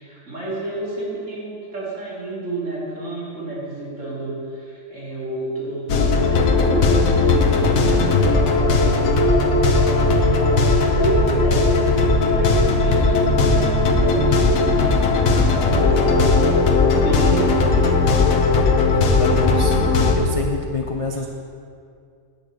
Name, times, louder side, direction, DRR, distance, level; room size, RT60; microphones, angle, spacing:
voice 1, 0.0-11.7 12.1-16.7 17.0-17.9, right 2 dB, 65° right, -7 dB, 3.1 m, -30 dB
sound 1, 5.9-20.2, left 3 dB, 85° left, 1.4 m, -17 dB
voice 2, 18.9-19.8 20.1-21.3, left 4 dB, 50° left, 2 dB, 0.4 m, -27 dB
9.0 x 5.1 x 7.6 m, 2.3 s
omnidirectional pair, 1.4 m